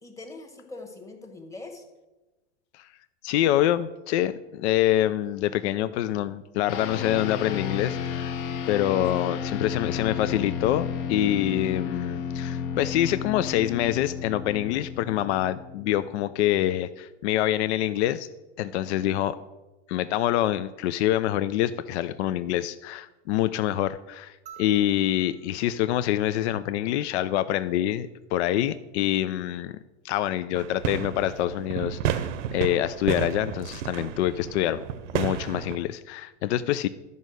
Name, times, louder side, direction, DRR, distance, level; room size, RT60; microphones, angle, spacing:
voice 1, 0.0-1.8 9.0-9.3, left 2 dB, 10° left, 3 dB, 1.2 m, -42 dB
voice 2, 3.2-8.4 8.7-18.3 18.6-19.3 19.9-29.8 30.0-34.8 35.1-36.9, left 12 dB, 65° left, 13 dB, 0.5 m, -26 dB
sound 1, 6.7-16.3, left 7 dB, 50° left, 1.0 m, -32 dB
sound 2, 24.5-27.0 28.6-28.7, right 9 dB, 20° right, 0.5 m, -52 dB
sound 3, 30.5-35.8, right 9 dB, 80° right, 0.8 m, -32 dB
11.0 x 5.4 x 6.3 m, 1.1 s
supercardioid pair, 150°, 37 cm